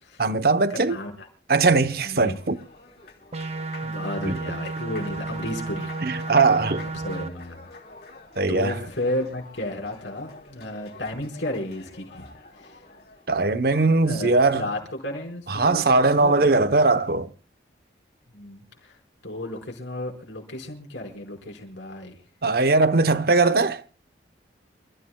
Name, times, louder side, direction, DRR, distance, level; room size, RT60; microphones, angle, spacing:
voice 1, 0.2-1.0 1.5-2.6 4.3-4.4 6.0-6.9 8.4-8.7 13.3-14.7 15.5-17.3 22.4-23.8, right 3 dB, 55° right, 0.9 m, -20 dB
voice 2, 0.7-1.3 2.0-2.4 3.8-5.9 6.9-7.7 8.5-12.3 12.6-12.8 14.0-16.6 18.3-22.2, left 1 dB, 85° left, 5.2 m, -33 dB
Applause, 1.5-13.3, left 3 dB, 55° left, 3.4 m, -47 dB
sound 1, 3.3-7.3, right 3 dB, 35° right, 0.6 m, -32 dB
29.0 x 14.0 x 2.3 m
head